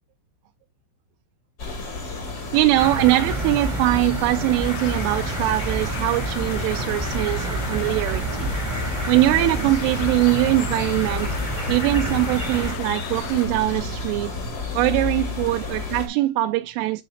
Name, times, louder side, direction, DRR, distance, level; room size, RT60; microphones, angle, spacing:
sound 1, 1.6-16.1, left 3 dB, 55° left, 1.1 m, -32 dB
voice 1, 2.5-8.5 9.1-11.3 11.7-14.4 14.7-17.0, right 17 dB, 85° right, 3.0 m, -22 dB
sound 2, 2.8-12.7, right 2 dB, 40° right, 0.6 m, -29 dB
sound 3, 4.6-13.5, left 11 dB, 75° left, 2.6 m, -38 dB
11.5 x 4.1 x 2.7 m
omnidirectional pair, 5.5 m